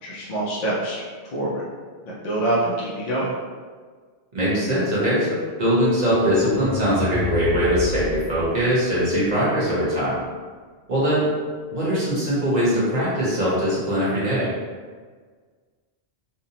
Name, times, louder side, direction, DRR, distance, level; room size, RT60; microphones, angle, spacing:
voice 1, 0.0-1.7 2.1-3.3, right 1 dB, 55° left, -5 dB, 0.5 m, -26 dB
voice 2, 4.3-10.2 10.9-11.3 11.7-14.5, equal, 45° right, -8 dB, 0.9 m, -21 dB
sound 1, 6.1-9.1, left 3 dB, 75° left, 0.8 m, -30 dB
2.6 x 2.0 x 2.8 m, 1.5 s
omnidirectional pair, 1.1 m